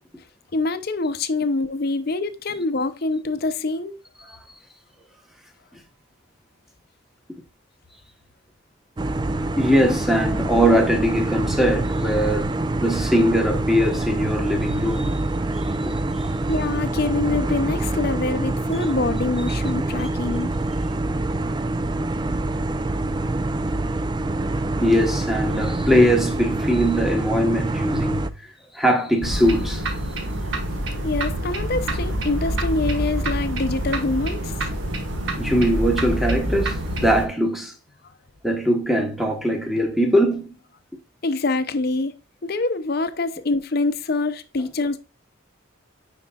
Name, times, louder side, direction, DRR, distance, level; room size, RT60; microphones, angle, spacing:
voice 1, 0.5-4.0 16.5-20.5 31.0-34.7 41.2-42.1 42.4-45.0, left 3 dB, 45° left, 0.6 m, -25 dB
sound 1, 9.0-28.3, right 2 dB, 20° right, 0.3 m, -25 dB
voice 2, 9.6-12.5 12.8-15.3 15.8-16.4 24.8-28.3 28.7-30.1 35.3-37.7 38.4-40.5, equal, ahead, 1.1 m, -21 dB
sound 2, 29.2-37.3, right 1 dB, 65° right, 1.5 m, -26 dB
9.6 x 4.5 x 2.3 m
head